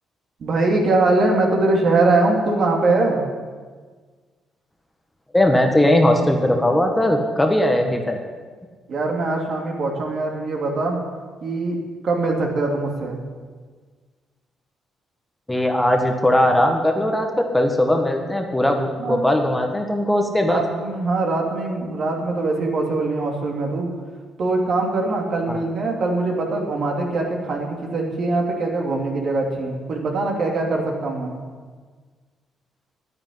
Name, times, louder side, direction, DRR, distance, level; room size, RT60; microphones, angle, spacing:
voice 1, 0.4-3.2 8.9-11.0 11.4-11.8 12.0-13.2 19.0-19.3 20.5-23.9 24.4-31.3, right 2 dB, 55° right, 0 dB, 3.0 m, -22 dB
voice 2, 5.3-8.2 15.5-20.6 25.5-25.6, left 1 dB, 10° left, 4 dB, 1.5 m, -19 dB
10.0 x 9.6 x 9.5 m, 1.5 s
cardioid pair, 90°, 0 cm